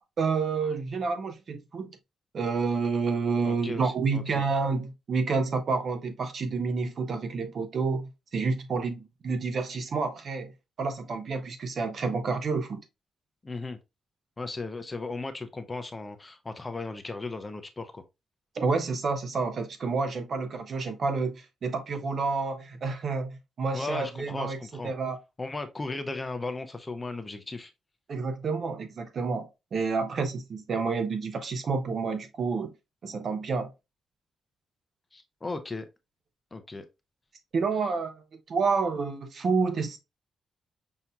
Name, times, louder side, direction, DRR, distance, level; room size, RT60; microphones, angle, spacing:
voice 1, 0.2-2.0 2.3-10.5 10.8-12.8 18.5-24.6 24.8-25.2 28.1-32.7 33.0-33.7 37.5-40.0, right 4 dB, 45° right, 0.7 m, -29 dB
voice 2, 3.4-4.4 13.4-13.8 14.4-18.0 23.7-24.9 25.4-27.7 35.1-35.9 36.5-36.8, left 3 dB, 20° left, 0.5 m, -36 dB
5.8 x 2.7 x 2.2 m
cardioid pair, 140°, 0 cm